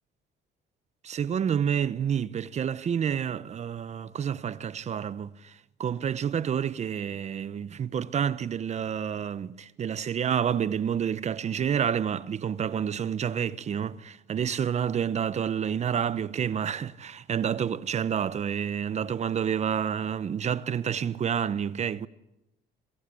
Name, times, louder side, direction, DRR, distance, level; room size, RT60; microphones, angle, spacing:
voice 1, 1.0-22.1, right 8 dB, 40° right, 1.0 m, -29 dB
27.0 x 23.5 x 8.5 m
cardioid pair, 110°, 17 cm